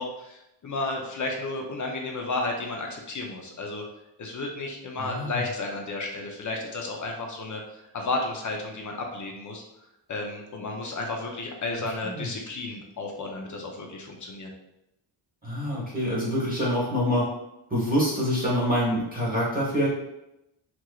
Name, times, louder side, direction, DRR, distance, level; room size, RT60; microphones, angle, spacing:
voice 1, 0.0-3.8 4.2-7.6 7.9-9.6 10.1-14.5, left 2 dB, 40° left, 1 dB, 0.7 m, -32 dB
voice 2, 5.0-5.4 12.0-12.3 15.4-17.3 17.7-19.9, equal, 20° right, -7 dB, 1.1 m, -26 dB
3.5 x 3.0 x 2.3 m, 0.88 s
wide cardioid pair, 130°, 48 cm